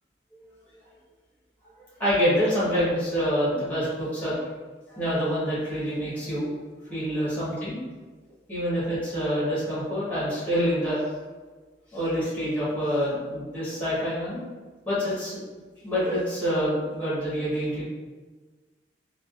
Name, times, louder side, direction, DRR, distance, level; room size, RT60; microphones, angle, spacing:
voice 1, 2.0-4.3 4.9-6.5 6.9-7.8 8.5-11.0 11.9-14.4 14.8-15.4 15.8-17.8, equal, 10° left, -9 dB, 1.1 m, -26 dB
3.4 x 2.3 x 2.4 m, 1.3 s
head